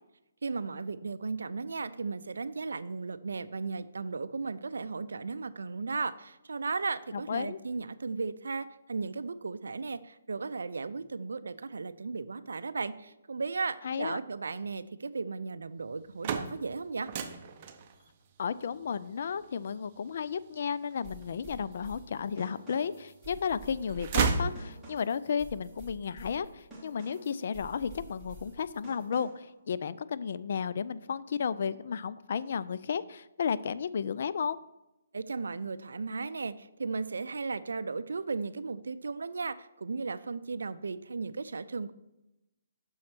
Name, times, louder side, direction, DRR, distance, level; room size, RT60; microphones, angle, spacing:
voice 1, 0.4-17.1 35.1-41.9, right 4 dB, 80° right, 14 dB, 0.4 m, -35 dB
voice 2, 7.1-7.6 13.8-14.2 18.4-34.6, left 6 dB, 55° left, 15 dB, 0.3 m, -33 dB
sound 1, 15.9-21.9 22.4-23.3 23.6-25.2, right 5 dB, 35° right, 0.6 m, -34 dB
sound 2, 21.0-29.5, right 1 dB, ahead, 2.2 m, -49 dB
6.3 x 4.3 x 5.8 m, 0.93 s
hypercardioid pair, 150°, 0 cm